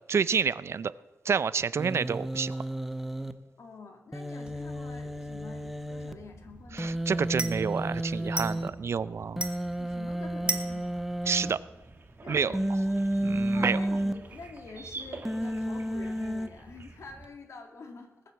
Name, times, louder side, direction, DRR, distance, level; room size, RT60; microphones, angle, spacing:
voice 1, 0.1-0.9 1.2-2.6 6.7-9.4 11.3-11.6 12.3-12.6 13.2-13.8, right 6 dB, 60° right, 17 dB, 0.4 m, -28 dB
Human voice, 1.8-3.3 4.1-6.1 6.8-8.7 9.4-11.5 12.5-14.1 15.3-16.5, right 1 dB, 5° right, 0.8 m, -31 dB
voice 2, 3.6-7.0 9.8-11.6 12.2-13.0 13.5-18.1, left 4 dB, 70° left, 4 dB, 2.1 m, -47 dB
sound 1, 4.4-17.2, right 2 dB, 20° right, 1.4 m, -41 dB
sound 2, 11.5-17.0, right 3 dB, 45° right, 1.6 m, -48 dB
19.5 x 7.8 x 7.0 m, 1.1 s
wide cardioid pair, 130°, 5 cm